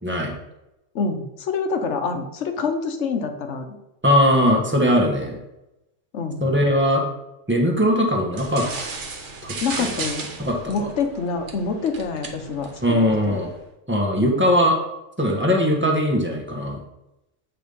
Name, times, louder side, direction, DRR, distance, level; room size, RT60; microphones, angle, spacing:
voice 1, 0.0-0.3 4.0-5.4 6.4-7.0 7.5-8.6 9.4-10.0 10.4-10.9 12.8-13.5 13.9-14.8 15.2-16.8, equal, 10° right, -1 dB, 1.2 m, -20 dB
voice 2, 0.9-3.8 6.1-6.4 9.6-10.3 10.7-13.4 14.2-14.4, left 4 dB, 70° left, 6 dB, 1.1 m, -26 dB
sound 1, 8.3-13.6, right 4 dB, 70° right, 1.3 m, -35 dB
8.4 x 3.4 x 5.3 m, 0.91 s
omnidirectional pair, 1.2 m